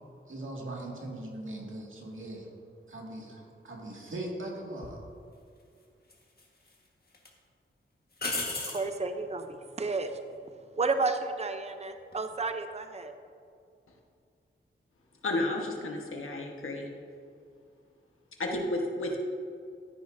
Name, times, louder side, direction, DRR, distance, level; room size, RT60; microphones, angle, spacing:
voice 1, 0.3-2.5 2.9-5.0, right 1 dB, 70° right, -2 dB, 2.0 m, -40 dB
sound 1, 4.8-5.0 6.1-6.7 7.1-7.3 8.2-8.9 12.0-12.4, left 2 dB, 50° left, 1.5 m, -34 dB
voice 2, 8.7-10.2 10.8-13.1, right 3 dB, 30° right, 7 dB, 0.6 m, -32 dB
voice 3, 15.2-16.9 18.4-19.2, left 1 dB, 90° left, 0 dB, 1.2 m, -32 dB
13.0 x 10.5 x 2.6 m, 2.4 s
wide cardioid pair, 75°, 21 cm